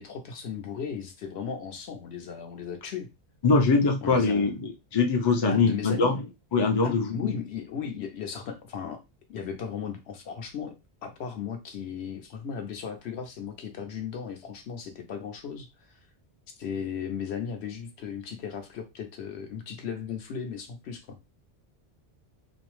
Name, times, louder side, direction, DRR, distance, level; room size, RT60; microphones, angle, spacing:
voice 1, 0.0-3.1 4.0-4.5 5.5-6.2 6.8-9.0 9.3-16.0 16.6-21.2, left 7 dB, 75° left, 5 dB, 0.9 m, -36 dB
voice 2, 3.4-6.2 6.5-7.1, left 4 dB, 45° left, 3 dB, 0.3 m, -23 dB
2.6 x 2.0 x 2.9 m, 0.24 s
omnidirectional pair, 1.1 m